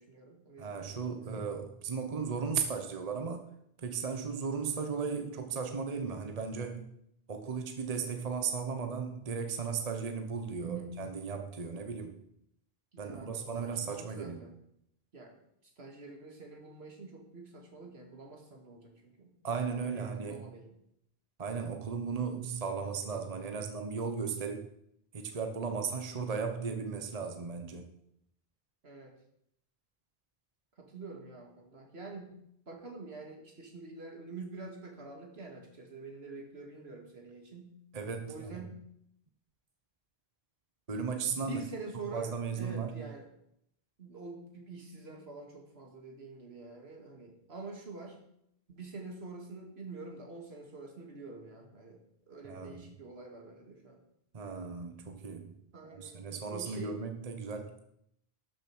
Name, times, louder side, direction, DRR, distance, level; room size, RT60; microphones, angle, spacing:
voice 1, 0.0-1.5 10.6-10.9 12.9-14.6 15.1-19.4 19.9-20.8 28.8-29.2 30.8-32.3 32.7-37.7 38.3-38.7 41.3-43.3 44.0-48.2 48.7-54.0 55.7-57.0, right 3 dB, 75° right, 2 dB, 2.3 m, -46 dB
voice 2, 0.6-3.5 3.8-6.9 7.3-12.2 13.0-14.4 19.4-20.4 21.4-24.7 25.1-27.9 37.9-38.6 40.9-41.6 42.1-43.1 52.4-52.9 54.3-55.5 55.8-57.8, right 5 dB, 40° right, 6 dB, 1.0 m, -36 dB
12.0 x 6.8 x 6.1 m, 0.74 s
omnidirectional pair, 1.1 m